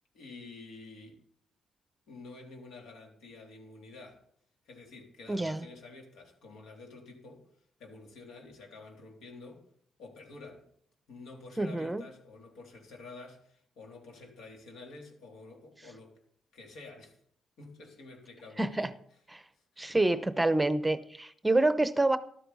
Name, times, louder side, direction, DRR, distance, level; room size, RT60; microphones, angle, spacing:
voice 1, 0.1-1.2 2.1-4.2 4.6-7.5 7.8-9.7 10.0-10.6 11.1-16.2 16.5-17.2 17.6-18.9 19.7-19.9, left 3 dB, 85° left, 3.2 m, -49 dB
voice 2, 5.3-5.7 11.6-12.0 18.6-18.9 19.3-19.4 19.8-22.2, right 2 dB, 10° right, 0.7 m, -27 dB
13.0 x 12.5 x 4.0 m
cardioid pair, 130°, 0 cm